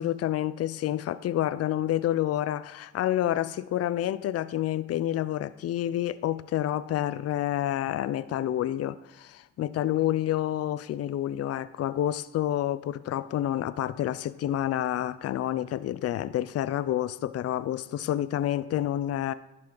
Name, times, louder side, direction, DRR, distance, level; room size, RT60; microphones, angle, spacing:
voice 1, 0.0-19.3, left 12 dB, 55° left, 0.5 m, -28 dB
11.0 x 6.0 x 3.9 m
cardioid pair, 90°, 30 cm